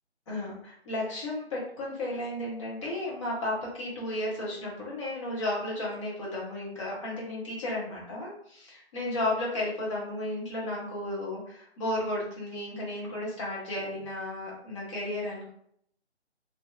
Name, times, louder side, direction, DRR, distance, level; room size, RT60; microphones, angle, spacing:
voice 1, 0.3-15.5, left 1 dB, 25° left, -5 dB, 1.0 m, -33 dB
2.9 x 2.7 x 2.3 m, 0.67 s
figure-of-eight pair, 150°, 34 cm